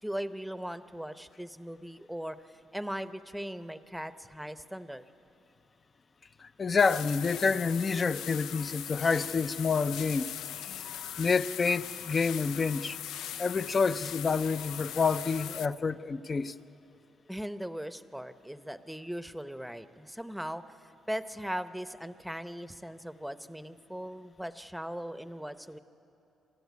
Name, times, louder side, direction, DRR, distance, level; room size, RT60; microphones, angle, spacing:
voice 1, 0.0-5.0 17.3-20.8 21.1-25.8, equal, ahead, 0.8 m, -39 dB
voice 2, 6.4-10.3 10.8-10.9 11.2-13.0 13.4-16.5, left 5 dB, 35° left, 0.6 m, -28 dB
sound 1, 6.8-15.7, left 10 dB, 85° left, 0.5 m, -40 dB
26.0 x 13.0 x 9.5 m
cardioid pair, 90°, 0 cm